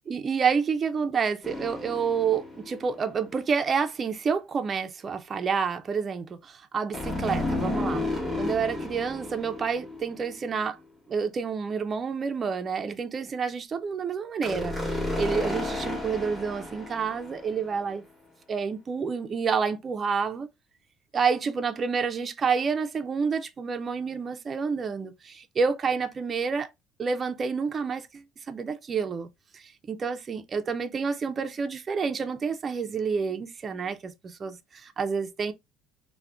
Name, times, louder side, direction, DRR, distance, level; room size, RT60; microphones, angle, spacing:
voice 1, 0.1-8.0 8.4-10.8 11.1-18.0 18.5-20.5 21.1-26.7 27.0-29.3 29.5-35.5, right 5 dB, 30° right, 0.3 m, -29 dB
sound 1, 1.4-3.0 6.9-10.7 14.4-17.7, left 2 dB, 5° left, 0.9 m, -32 dB
2.4 x 2.1 x 3.3 m
cardioid pair, 125°, 0 cm